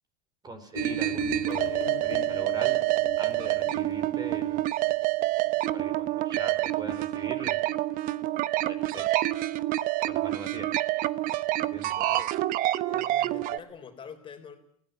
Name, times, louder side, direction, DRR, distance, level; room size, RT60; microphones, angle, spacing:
voice 1, 0.4-2.8 3.2-4.7 5.7-7.7 8.6-9.2 10.1-10.7 11.6-12.0, right 3 dB, 20° right, 9 dB, 4.7 m, -41 dB
sound 1, 0.7-6.1, left 16 dB, 60° left, 1.8 m, -41 dB
sound 2, 0.8-13.6, right 16 dB, 50° right, 1.0 m, -27 dB
voice 2, 12.0-12.3 12.9-14.6, left 7 dB, 30° left, 5 dB, 3.9 m, -44 dB
20.0 x 16.5 x 9.4 m, 0.63 s
hypercardioid pair, 100°, 18 cm